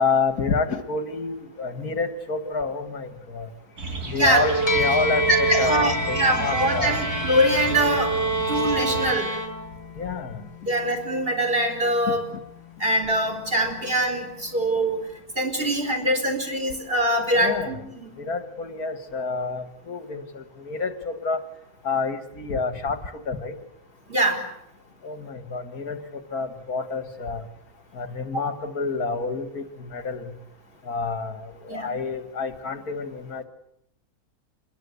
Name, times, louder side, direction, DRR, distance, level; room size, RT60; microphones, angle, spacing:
voice 1, 0.0-3.5 4.1-7.0 10.0-10.4 17.3-17.8 18.2-21.4 21.8-23.0 23.3-23.5 25.0-27.4 27.9-30.3 30.9-33.4, left 4 dB, 70° left, 10 dB, 2.1 m, -28 dB
sound 1, 3.8-9.1, right 2 dB, 70° right, 3.8 m, -34 dB
voice 2, 4.2-4.5 5.3-9.3 10.7-12.3 12.8-15.1 15.4-18.1 24.1-24.5 31.7-31.9, right 1 dB, 35° right, 4 dB, 4.8 m, -23 dB
sound 2, 4.3-10.0, right 3 dB, 10° right, 2.8 m, -27 dB
sound 3, 4.7-14.3, left 4 dB, 30° left, 1.1 m, -34 dB
26.5 x 21.5 x 8.2 m, 0.77 s
omnidirectional pair, 1.7 m